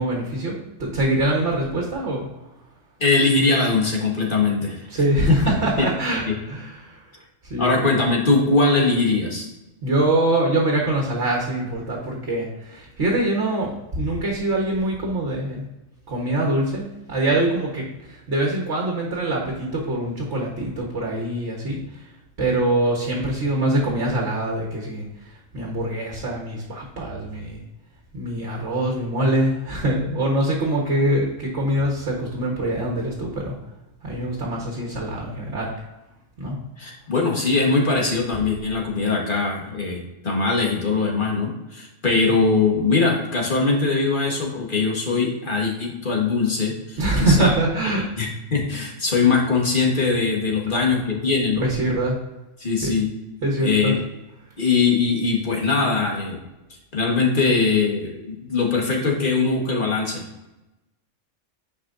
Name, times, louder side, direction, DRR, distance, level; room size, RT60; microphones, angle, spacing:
voice 1, 0.0-2.2 4.9-7.0 7.5-7.7 9.8-15.6 16.1-17.8 18.3-21.8 22.4-25.0 25.5-27.6 28.1-33.5 34.0-35.7 36.4-36.6 47.0-48.0 51.6-52.2 52.8-52.9 53.4-53.9, right 1 dB, 60° right, -1 dB, 1.8 m, -23 dB
voice 2, 3.0-4.9 5.3-5.4 6.3-6.4 7.6-9.5 36.8-47.5 48.2-51.7 52.6-53.1 53.6-54.0 54.6-56.4 56.9-60.2, left 4 dB, 40° left, -1 dB, 1.7 m, -21 dB
9.4 x 5.5 x 2.6 m, 0.97 s
omnidirectional pair, 1.3 m